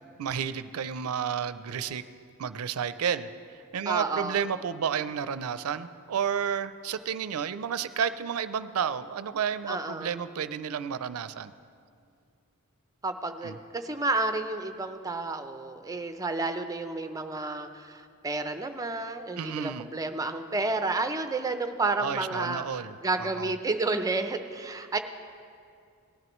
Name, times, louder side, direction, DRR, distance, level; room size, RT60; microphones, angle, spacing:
voice 1, 0.2-2.0 2.4-11.5 13.4-13.6 19.4-19.9 22.0-23.5, right 7 dB, 75° right, 14 dB, 0.4 m, -31 dB
voice 2, 3.9-4.4 9.7-10.1 13.0-22.7 23.0-25.0, right 3 dB, 15° right, 8 dB, 0.5 m, -31 dB
18.0 x 11.0 x 3.1 m, 2.3 s
head